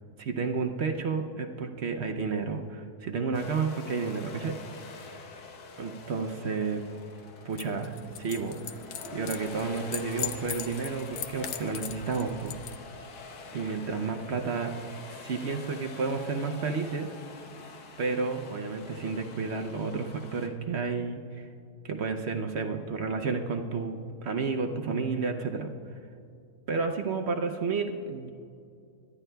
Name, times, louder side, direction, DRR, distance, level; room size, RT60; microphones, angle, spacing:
voice 1, 0.2-4.6 5.8-6.8 7.4-8.8 9.1-12.5 13.5-14.7 15.2-17.1 18.0-21.5 21.8-25.7 26.7-28.3, right 4 dB, 55° right, 5 dB, 0.8 m, -31 dB
sound 1, 3.3-20.5, left 4 dB, 90° left, 1.6 m, -46 dB
sound 2, 7.5-12.8, left 9 dB, 60° left, 0.9 m, -40 dB
23.0 x 12.0 x 2.2 m, 2.5 s
omnidirectional pair, 1.7 m